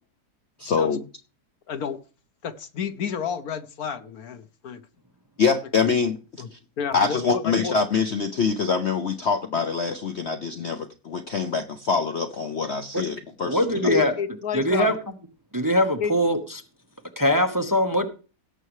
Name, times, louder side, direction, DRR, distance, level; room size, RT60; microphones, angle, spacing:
voice 1, 0.6-1.0 5.4-6.2 6.5-6.6 6.9-13.6, left 5 dB, 50° left, 7 dB, 0.9 m, -24 dB
voice 2, 1.7-2.0 2.4-4.8 6.4-6.5 6.8-7.8 13.9-15.0 16.0-16.1, left 7 dB, 65° left, 11 dB, 1.3 m, -30 dB
voice 3, 13.4-14.1 14.5-14.9 15.5-16.6 17.2-18.1, equal, 15° right, 5 dB, 1.0 m, -22 dB
17.5 x 7.6 x 3.2 m, 0.35 s
omnidirectional pair, 1.8 m